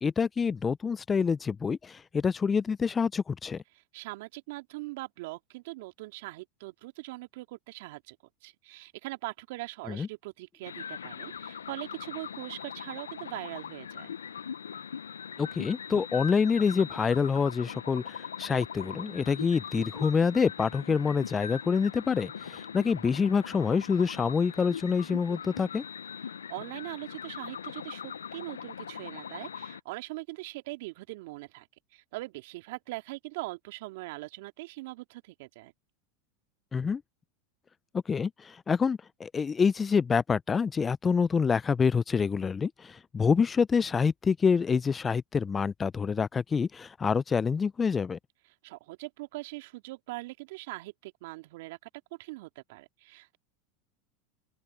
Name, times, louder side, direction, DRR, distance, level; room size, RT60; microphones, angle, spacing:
voice 1, 0.0-3.6 9.9-10.1 15.4-25.8 36.7-37.0 37.9-48.2, left 5 dB, 25° left, 0.5 m, -27 dB
voice 2, 3.7-8.2 8.4-14.2 26.3-31.7 31.9-35.7 48.6-51.9 52.2-53.4, right 21 dB, 65° right, 2.4 m, -41 dB
sound 1, 10.6-29.8, left 7 dB, 85° left, 0.7 m, -41 dB
open air
hypercardioid pair, 90°, 0 cm